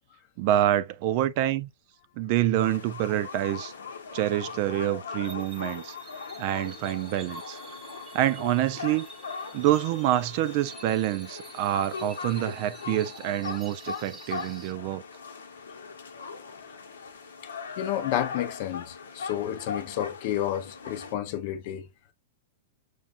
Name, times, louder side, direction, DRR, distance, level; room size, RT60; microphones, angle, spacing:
voice 1, 0.4-1.7 2.2-3.7 4.1-5.9 6.4-7.6 8.1-9.1 9.5-15.0, right 13 dB, 50° right, 0.4 m, -26 dB
sound 1, 2.5-21.1, left 5 dB, 85° left, 0.9 m, -40 dB
sound 2, 5.2-14.7, right 4 dB, 10° right, 0.8 m, -49 dB
voice 2, 17.7-21.9, left 12 dB, 50° left, 0.6 m, -31 dB
6.0 x 2.3 x 2.4 m
hypercardioid pair, 130°, 0 cm